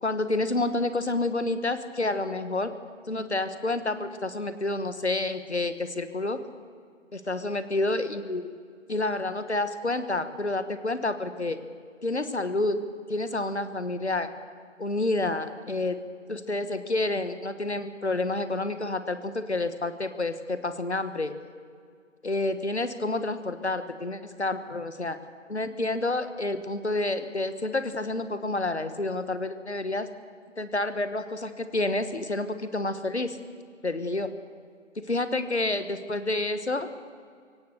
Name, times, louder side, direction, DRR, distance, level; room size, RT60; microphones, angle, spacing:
voice 1, 0.0-2.7 3.1-6.4 7.1-8.5 8.9-11.6 12.0-12.8 13.1-14.3 14.8-16.0 16.3-21.3 22.2-25.2 25.5-30.1 30.6-33.4 33.8-34.3 35.0-36.9, left 2 dB, 60° left, 11 dB, 1.5 m, -29 dB
23.0 x 17.5 x 6.7 m, 2.1 s
figure-of-eight pair, 170°, 38 cm